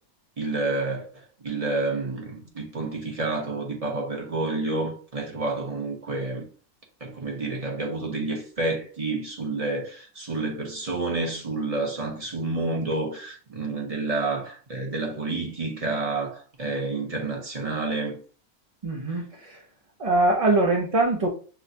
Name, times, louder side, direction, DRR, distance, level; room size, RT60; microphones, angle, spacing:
voice 1, 0.4-6.4 7.0-18.2, right 3 dB, 30° right, 0.9 m, -29 dB
voice 2, 18.8-19.6 20.0-21.3, right 2 dB, 45° right, 0.4 m, -22 dB
6.4 x 2.2 x 2.7 m
omnidirectional pair, 1.6 m